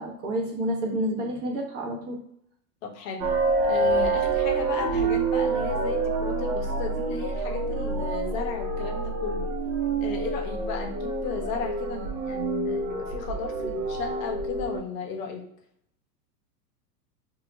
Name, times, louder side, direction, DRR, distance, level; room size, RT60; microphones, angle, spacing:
voice 1, 0.0-2.2, right 1 dB, 30° right, -1 dB, 0.6 m, -29 dB
voice 2, 2.8-3.2 3.6-9.5 10.0-15.4, left 5 dB, 55° left, 3 dB, 0.7 m, -34 dB
sound 1, 3.2-14.8, right 3 dB, 70° right, 0.7 m, -27 dB
2.3 x 2.1 x 3.8 m, 0.72 s
hypercardioid pair, 100°, 49 cm